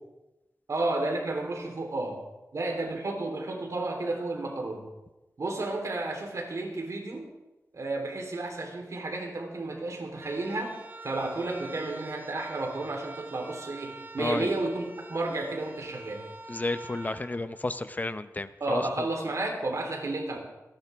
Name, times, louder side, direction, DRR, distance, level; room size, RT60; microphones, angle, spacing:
voice 1, 0.7-2.2 2.5-4.8 5.4-7.3 7.7-10.8 11.0-16.2 18.6-20.4, right 2 dB, 60° right, 1 dB, 3.5 m, -32 dB
sound 1, 10.1-18.3, right 2 dB, 35° right, 1.4 m, -46 dB
voice 2, 14.2-14.5 16.5-18.8, left 2 dB, 30° left, 12 dB, 0.7 m, -31 dB
28.0 x 11.5 x 3.6 m, 1.0 s
wide cardioid pair, 105°, 6 cm